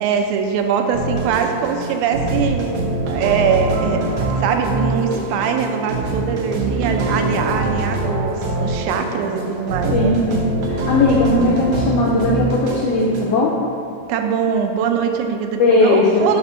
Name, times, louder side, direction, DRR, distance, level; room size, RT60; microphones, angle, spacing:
voice 1, 0.0-10.2 14.1-16.4, right 7 dB, 85° right, 5 dB, 2.0 m, -22 dB
sound 1, 0.9-13.2, right 2 dB, 70° right, 1.5 m, -23 dB
voice 2, 9.9-10.4 10.7-13.5 15.6-16.3, left 2 dB, 85° left, -3 dB, 1.4 m, -17 dB
4.9 x 4.3 x 5.5 m, 2.4 s
omnidirectional pair, 3.4 m